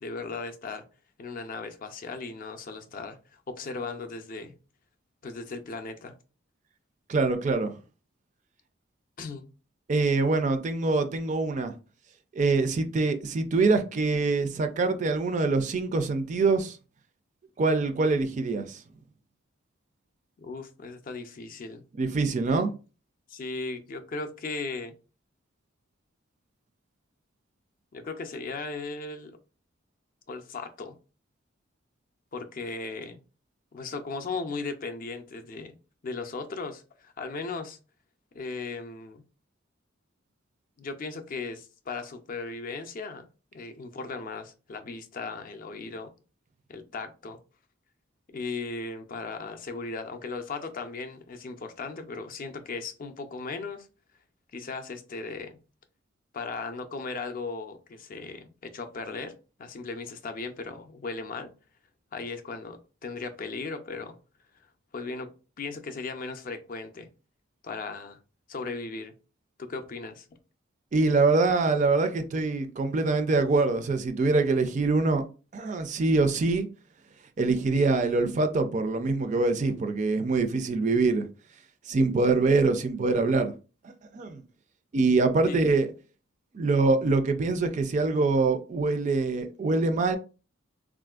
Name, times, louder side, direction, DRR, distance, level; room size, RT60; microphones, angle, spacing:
voice 1, 0.0-0.8 1.2-4.5 5.2-6.1 9.2-9.5 20.4-21.8 22.5-22.6 23.3-25.0 27.9-29.4 30.3-31.0 32.3-33.2 33.7-35.8 36.0-37.8 38.3-39.2 40.8-43.3 43.5-46.1 46.7-47.4 48.3-53.9 54.5-55.6 56.3-59.3 59.6-61.5 62.1-64.1 64.9-65.3 65.6-67.1 67.6-68.2 68.5-69.1 69.6-70.3 85.5-85.6, left 4 dB, 45° left, 0.4 m, -37 dB
voice 2, 7.1-7.8 9.9-11.7 12.3-16.8 17.6-18.8 22.0-22.7 70.9-75.2 75.5-76.7 77.4-81.3 81.9-83.5 84.1-84.4 84.9-85.9 86.5-90.2, right 3 dB, 40° right, 0.3 m, -24 dB
3.6 x 2.5 x 2.3 m
head